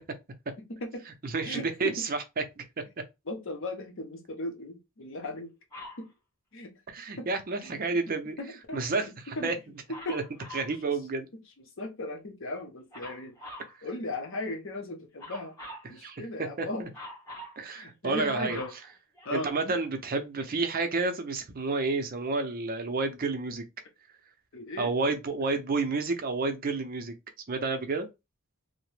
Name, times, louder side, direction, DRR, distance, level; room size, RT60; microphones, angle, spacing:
voice 1, 0.6-1.1 1.4-2.0 3.3-5.5 6.0-6.1 6.5-6.7 7.2-7.3 7.6-7.8 8.4-9.5 9.9-10.2 10.9-11.0 11.3-11.4 11.8-13.4 13.8-15.6 15.9-16.9 17.7-18.7 19.2-19.8 24.5-25.2, left 2 dB, 60° left, 0.7 m, -37 dB
voice 2, 1.2-2.6 6.9-8.4 8.7-9.1 9.4-9.6 10.1-10.2 10.5-11.3 16.0-16.2 16.6-16.9 17.6-18.6 19.3-23.6 24.8-27.1 27.5-28.1, right 3 dB, 45° right, 0.5 m, -30 dB
Dog, 5.7-6.1 9.9-10.8 12.9-13.7 15.2-15.9 16.9-17.6 18.1-19.6 20.4-20.5, left 1 dB, 15° left, 1.2 m, -44 dB
2.8 x 2.1 x 3.1 m
head